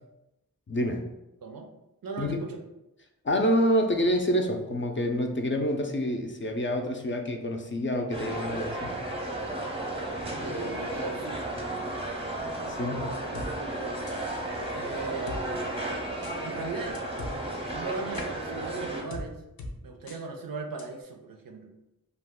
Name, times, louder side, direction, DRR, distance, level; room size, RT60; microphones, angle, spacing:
voice 1, 0.7-1.0 2.2-2.4 3.2-8.9 12.7-13.1, equal, 35° left, 3 dB, 0.4 m, -27 dB
voice 2, 2.0-2.6 10.4-11.4 14.7-16.0 16.4-17.0 17.7-19.4 19.8-21.7, right 4 dB, 75° right, 3 dB, 0.5 m, -37 dB
sound 1, 8.1-19.0, right 1 dB, 15° right, 0.6 m, -34 dB
sound 2, 13.3-13.5 14.1-14.4 15.3-15.4 16.2-16.4 16.9-17.3 18.1-18.3 19.1-19.2 19.6-19.7 20.1-20.2 20.8-20.9, left 2 dB, 90° left, 0.5 m, -39 dB
2.3 x 2.2 x 3.5 m, 0.92 s
wide cardioid pair, 40°, 35 cm